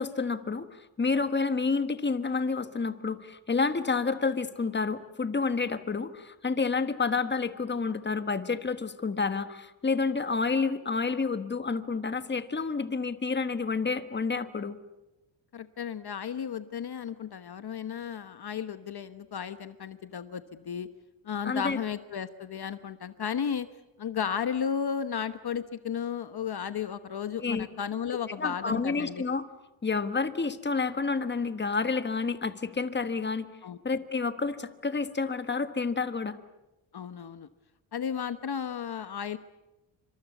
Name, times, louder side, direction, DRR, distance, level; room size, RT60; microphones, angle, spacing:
voice 1, 0.0-14.8 21.4-21.8 27.4-27.7 28.4-29.4 29.8-33.5 33.8-36.4, left 4 dB, 20° left, 10 dB, 1.4 m, -29 dB
voice 2, 15.5-20.9 21.2-23.7 24.0-29.2 33.6-33.8 36.9-37.5 37.9-39.4, left 7 dB, 50° left, 11 dB, 1.1 m, -34 dB
27.0 x 25.5 x 8.3 m, 1.0 s
wide cardioid pair, 135°, 49 cm